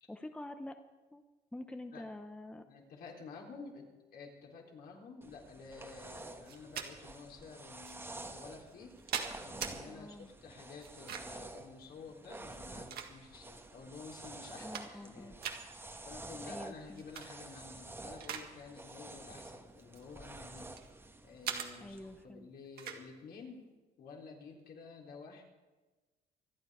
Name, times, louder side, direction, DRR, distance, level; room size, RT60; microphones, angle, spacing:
voice 1, 0.1-0.8 1.1-1.2 1.5-2.6 9.8-10.3 14.6-15.3 16.4-17.0 21.8-22.5, left 1 dB, 5° left, 7 dB, 0.9 m, -47 dB
voice 2, 2.7-15.4 16.0-20.7 21.2-23.6 24.0-25.4, left 4 dB, 65° left, -1 dB, 3.8 m, -51 dB
sound 1, 5.2-22.2, right 2 dB, 15° right, 1.4 m, -50 dB
sound 2, 6.5-6.9 7.8-7.9 8.7-9.8 10.8-11.5 12.4-13.5 14.0-14.1 14.5-15.1 15.4-15.6 17.0-17.3 17.7-18.5 18.8-19.0 19.8-20.9 21.4-21.7 22.8-23.0, right 8 dB, 65° right, 1.8 m, -41 dB
25.5 x 9.5 x 4.9 m, 1.2 s
cardioid pair, 110°, 17 cm